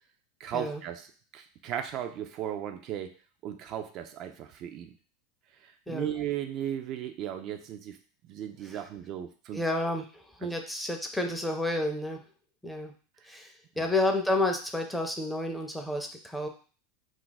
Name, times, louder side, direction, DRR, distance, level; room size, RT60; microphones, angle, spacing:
voice 1, 0.4-1.1 1.3-3.1 3.4-4.9 5.6-8.0 8.2-9.6 10.4-10.5 13.8-13.9, right 10 dB, 50° right, 6 dB, 0.3 m, -36 dB
voice 2, 9.5-12.2 12.6-12.9 13.2-16.5, left 2 dB, 5° left, 4 dB, 0.5 m, -30 dB
2.4 x 2.2 x 3.9 m, 0.39 s
hypercardioid pair, 105°, 0 cm